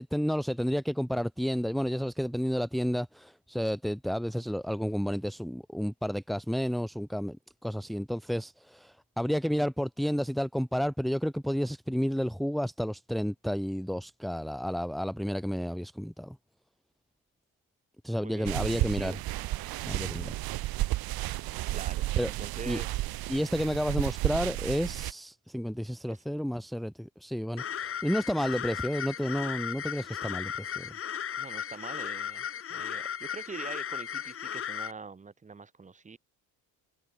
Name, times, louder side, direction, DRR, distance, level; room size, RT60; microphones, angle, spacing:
voice 1, 0.0-16.4 18.0-19.2 19.9-20.3 22.2-22.3 22.7-22.8 23.3-30.9, equal, ahead, 2.4 m, -31 dB
voice 2, 18.2-19.2 21.7-22.1 22.4-23.1 26.1-26.2 31.4-36.2, right 4 dB, 20° right, 4.6 m, -44 dB
sound 1, 18.5-25.1, right 17 dB, 85° right, 3.8 m, -32 dB
sound 2, 27.6-34.9, left 9 dB, 40° left, 2.8 m, -36 dB
cardioid pair, 160°, 35 cm